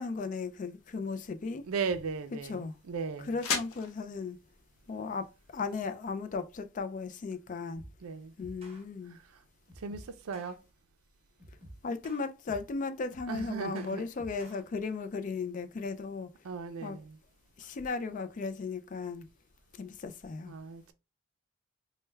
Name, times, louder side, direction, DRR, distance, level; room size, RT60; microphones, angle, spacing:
voice 1, 0.0-1.7 2.4-2.7 3.2-4.4 4.9-7.8 8.4-9.2 11.8-16.3 16.8-17.0 17.6-19.3 19.8-20.5, left 4 dB, 35° left, 0.3 m, -36 dB
sound 1, 0.7-6.7, left 5 dB, 85° left, 0.6 m, -42 dB
voice 2, 1.6-3.4 8.0-8.3 9.1-9.2 9.8-10.6 13.3-14.0 16.4-17.2 20.5-20.9, right 5 dB, 80° right, 0.5 m, -37 dB
sound 2, 7.8-8.1 8.4-8.8 9.7-10.5 11.4-12.8 13.1-14.6, right 1 dB, 30° right, 0.9 m, -51 dB
3.2 x 2.1 x 3.2 m
head